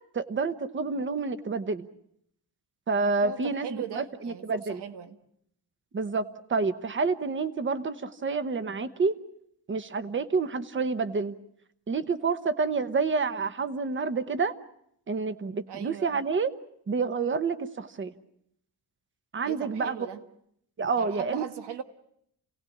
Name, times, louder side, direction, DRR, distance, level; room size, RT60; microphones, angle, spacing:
voice 1, 0.1-1.9 2.9-4.8 5.9-9.1 9.7-11.4 11.9-14.5 15.1-16.5 16.9-18.1 19.3-20.0 20.8-21.4, right 4 dB, 30° right, 12 dB, 1.1 m, -28 dB
voice 2, 3.2-5.2 15.7-16.2 19.4-20.2 20.9-21.8, right 9 dB, 90° right, 9 dB, 1.7 m, -39 dB
29.0 x 18.5 x 8.6 m, 0.73 s
wide cardioid pair, 175°, 40 cm